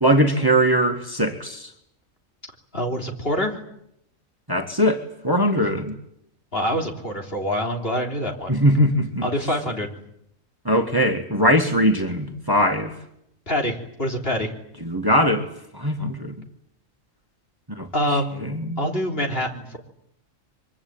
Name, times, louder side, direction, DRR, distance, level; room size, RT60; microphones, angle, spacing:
voice 1, 0.0-1.7 4.5-5.9 8.5-9.3 10.7-12.9 14.8-15.5 15.7-16.4 17.8-18.2 18.5-18.8, equal, 15° right, 4 dB, 2.0 m, -21 dB
voice 2, 2.7-3.6 5.6-5.7 6.5-8.6 9.2-9.9 13.5-14.5 17.9-19.8, equal, 45° left, 2 dB, 3.7 m, -26 dB
24.5 x 24.0 x 8.9 m, 0.76 s
omnidirectional pair, 1.4 m